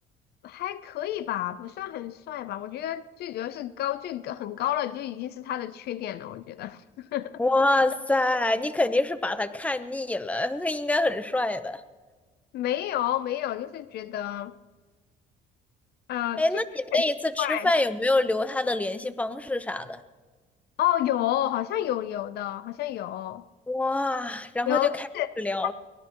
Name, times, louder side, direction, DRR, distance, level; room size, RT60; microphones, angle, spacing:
voice 1, 0.4-7.4 12.5-14.6 16.1-16.4 16.9-17.0 17.4-17.7 20.8-23.4 24.7-25.3, left 12 dB, 70° left, 0.7 m, -30 dB
voice 2, 7.4-11.8 16.4-20.0 23.7-25.1 25.4-25.7, left 2 dB, 10° left, 0.9 m, -26 dB
23.5 x 18.5 x 3.1 m
cardioid pair, 110°, 17 cm